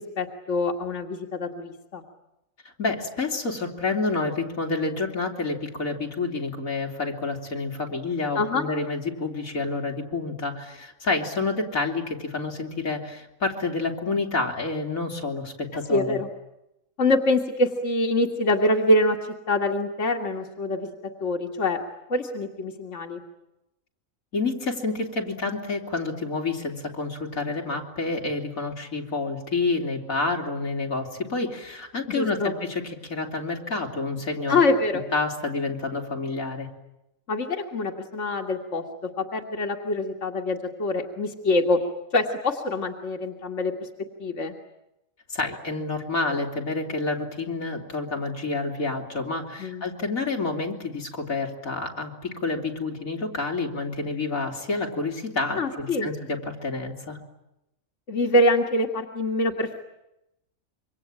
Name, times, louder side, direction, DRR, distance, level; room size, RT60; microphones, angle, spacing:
voice 1, 0.0-2.0 8.4-8.6 15.9-16.3 17.0-21.8 22.1-23.2 32.1-32.5 34.5-35.0 37.3-41.8 42.1-43.9 44.2-44.6 49.6-49.8 55.6-56.1 58.1-59.8, left 2 dB, 60° left, 2 dB, 2.3 m, -25 dB
voice 2, 2.8-16.2 24.3-34.6 35.1-36.7 45.3-57.2, left 3 dB, 85° left, 0 dB, 3.9 m, -29 dB
27.0 x 24.5 x 8.9 m, 0.88 s
omnidirectional pair, 1.4 m